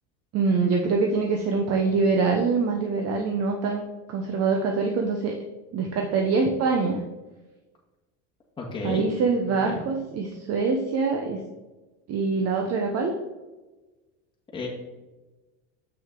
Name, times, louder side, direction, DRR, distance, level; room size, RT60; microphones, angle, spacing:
voice 1, 0.3-3.8 4.1-5.3 5.7-7.0 8.8-11.4 12.1-13.1, right 4 dB, 45° right, 2 dB, 0.9 m, -24 dB
voice 2, 8.6-9.0 9.6-9.8 14.5-14.7, left 4 dB, 15° left, -3 dB, 1.6 m, -32 dB
7.1 x 6.2 x 3.7 m, 1.2 s
supercardioid pair, 120°, 36 cm